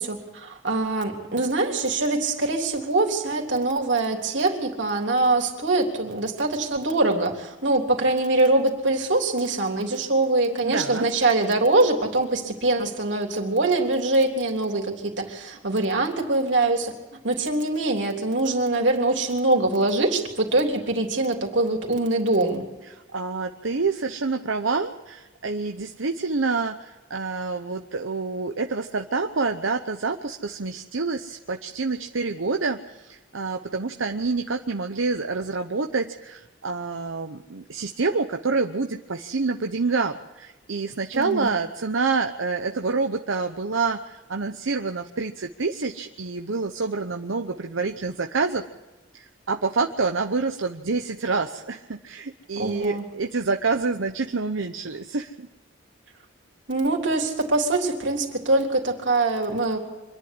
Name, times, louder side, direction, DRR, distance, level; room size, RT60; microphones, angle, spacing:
voice 1, 0.0-22.6 41.1-41.5 52.6-53.0 56.7-59.8, right 2 dB, 70° right, 1 dB, 3.5 m, -23 dB
voice 2, 10.6-11.1 22.8-48.6 49.1-55.5, right 4 dB, 90° right, 5 dB, 0.9 m, -27 dB
25.5 x 11.0 x 9.9 m, 1.1 s
head